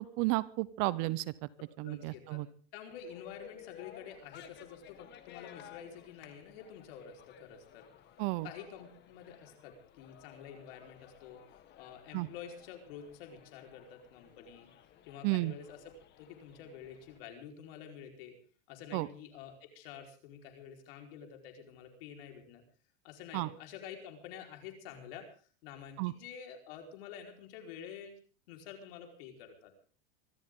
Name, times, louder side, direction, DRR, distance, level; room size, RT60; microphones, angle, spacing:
voice 1, 0.0-1.3 1.8-2.5 8.2-8.5 12.1-12.3 15.2-15.5 18.9-19.1 23.3-23.5 26.0-26.1, right 21 dB, 45° right, 18 dB, 0.8 m, -32 dB
voice 2, 1.8-2.4 2.7-7.9 8.4-11.4 11.8-14.7 15.1-15.8 16.2-18.3 18.7-22.6 23.0-25.3 25.6-28.2 28.5-29.7, left 8 dB, 60° left, 3 dB, 4.7 m, -49 dB
sound 1, 2.9-17.2, left 10 dB, 35° left, 1.7 m, -56 dB
25.0 x 13.0 x 3.8 m, 0.42 s
supercardioid pair, 140°, 32 cm